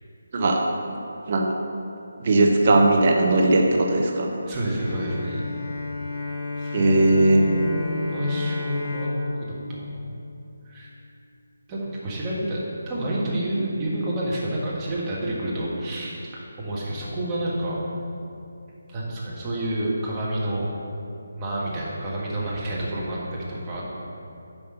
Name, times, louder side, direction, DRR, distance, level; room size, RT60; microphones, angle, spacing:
voice 1, 2.2-4.3 6.7-7.4, right 2 dB, 40° right, 1 dB, 0.7 m, -18 dB
voice 2, 4.5-5.4 6.6-6.9 7.3-9.1 9.4-9.9 10.6-10.9 11.7-12.6 12.9-17.8 18.9-20.7 21.4-23.9, right 1 dB, 20° right, -6 dB, 1.5 m, -29 dB
Bowed string instrument, 4.8-10.9, left 3 dB, 10° left, 2.0 m, -32 dB
5.9 x 5.3 x 6.7 m, 2.7 s
figure-of-eight pair, 155°, 0 cm